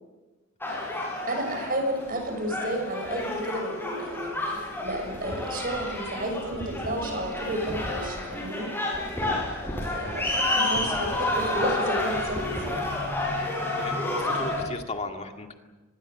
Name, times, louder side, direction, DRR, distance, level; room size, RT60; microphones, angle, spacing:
sound 1, 0.6-14.7, left 1 dB, 10° left, 7.1 m, -30 dB
voice 1, 1.3-8.7 9.2-9.5 9.9-12.9, right 1 dB, 45° right, 5 dB, 6.7 m, -32 dB
voice 2, 13.8-15.5, left 2 dB, 35° left, 3 dB, 2.1 m, -36 dB
25.5 x 22.0 x 7.9 m, 1.2 s
head